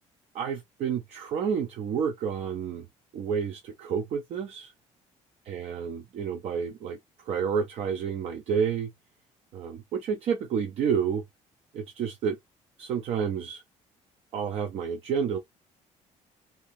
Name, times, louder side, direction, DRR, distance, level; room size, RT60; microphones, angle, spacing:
voice 1, 0.3-2.8 3.1-4.7 5.5-7.0 7.3-8.9 9.5-11.2 11.7-12.4 12.8-13.6 14.3-15.4, right 7 dB, 55° right, 0.6 m, -30 dB
2.8 x 2.8 x 3.3 m
cardioid pair, 155°, 13 cm